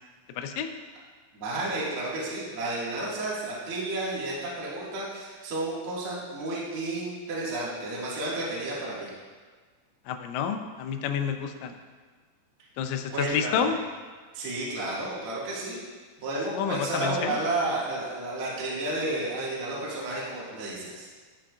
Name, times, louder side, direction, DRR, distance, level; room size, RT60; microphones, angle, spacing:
voice 1, 0.4-0.7 10.1-11.8 12.8-13.8 16.5-17.4, left 7 dB, 90° left, 6 dB, 3.2 m, -29 dB
voice 2, 1.3-9.1 13.1-13.7 14.3-15.8 16.2-21.1, right 2 dB, 75° right, -7 dB, 1.2 m, -32 dB
11.5 x 7.5 x 2.4 m, 1.5 s
omnidirectional pair, 5.7 m